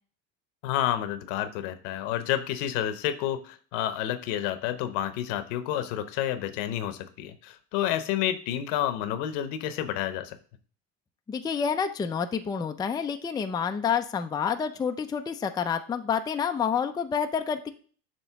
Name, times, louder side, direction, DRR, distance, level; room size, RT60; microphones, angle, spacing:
voice 1, 0.6-10.4, left 11 dB, 75° left, 11 dB, 0.9 m, -30 dB
voice 2, 11.3-17.7, left 7 dB, 10° left, 7 dB, 0.4 m, -28 dB
7.5 x 3.0 x 5.7 m, 0.43 s
supercardioid pair, 105°, 38 cm